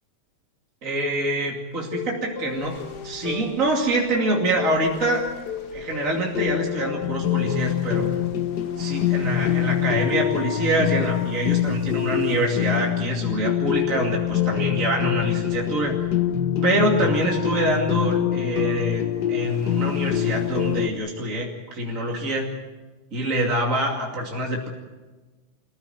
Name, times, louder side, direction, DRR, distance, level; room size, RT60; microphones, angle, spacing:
voice 1, 0.8-5.3 5.7-8.1 8.8-16.0 16.6-22.5 23.1-24.7, right 1 dB, 25° right, -1 dB, 2.7 m, -25 dB
sound 1, 1.9-20.9, left 10 dB, 55° left, 1.1 m, -25 dB
27.5 x 16.0 x 9.3 m, 1.3 s
omnidirectional pair, 3.5 m